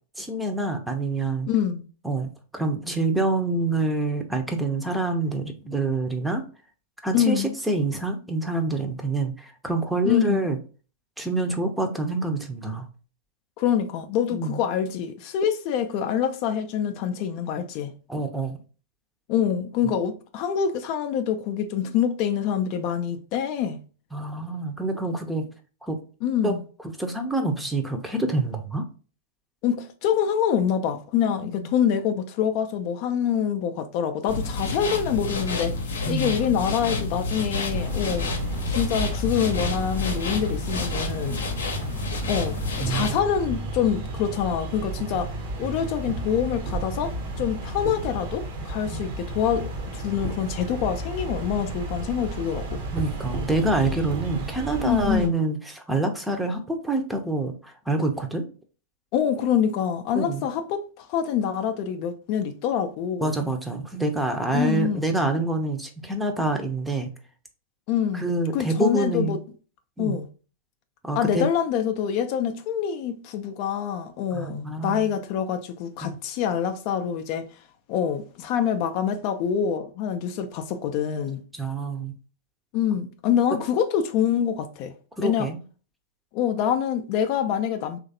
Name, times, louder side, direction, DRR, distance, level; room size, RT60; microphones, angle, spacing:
voice 1, 0.2-1.5 2.0-6.4 7.0-10.6 11.2-12.9 14.3-14.6 18.1-18.6 24.1-25.4 25.8-26.0 26.4-26.5 27.0-28.8 31.4-31.7 36.1-36.4 42.8-43.2 48.9-49.0 52.9-58.4 60.1-60.4 63.2-67.1 68.1-69.4 70.0-70.2 71.0-71.5 74.3-75.2 76.0-76.2 81.5-82.1 85.2-85.6, right 2 dB, 5° right, 0.6 m, -26 dB
voice 2, 1.5-1.8 7.1-7.5 10.0-10.5 13.6-17.9 19.3-23.8 26.2-26.6 29.6-35.8 36.1-38.3 38.7-41.4 42.3-42.6 42.9-45.3 45.6-52.8 54.8-55.3 59.1-63.4 64.5-65.0 67.9-68.3 68.5-69.4 70.0-70.3 71.2-77.5 77.9-81.4 82.7-84.9 85.2-85.5 86.3-88.0, left 8 dB, 45° left, 0.3 m, -25 dB
sound 1, 34.3-43.2, left 3 dB, 75° left, 0.7 m, -29 dB
sound 2, 37.7-55.3, right 2 dB, 55° right, 0.7 m, -32 dB
3.1 x 2.4 x 2.6 m
figure-of-eight pair, 100°, 0 cm